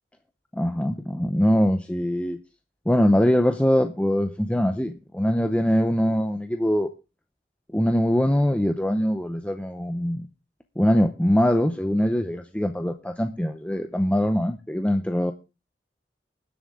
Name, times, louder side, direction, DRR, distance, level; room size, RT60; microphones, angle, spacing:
voice 1, 0.5-2.4 2.9-6.9 7.7-10.3 10.8-15.3, equal, 5° left, 7 dB, 0.6 m, -22 dB
20.0 x 7.6 x 3.5 m, 0.30 s
head